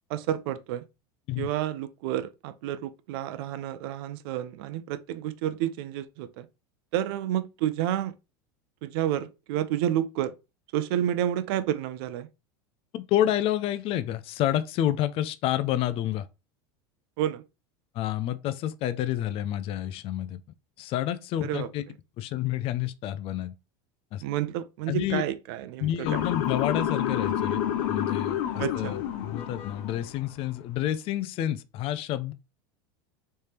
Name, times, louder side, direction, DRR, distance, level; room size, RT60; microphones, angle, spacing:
voice 1, 0.1-0.8 1.4-6.5 6.9-8.1 8.8-10.3 10.7-12.3 17.2-17.4 21.4-21.7 24.2-26.2 28.6-29.0, right 11 dB, 70° right, 0.6 m, -30 dB
voice 2, 12.9-16.3 17.9-20.4 20.8-21.8 22.2-23.5 24.1-24.2 24.9-25.2 25.8-27.6 27.9-32.3, left 12 dB, 45° left, 0.5 m, -29 dB
Motor vehicle (road) / Siren, 26.1-30.2, left 10 dB, 65° left, 0.9 m, -29 dB
3.3 x 3.3 x 4.3 m
supercardioid pair, 115°, 13 cm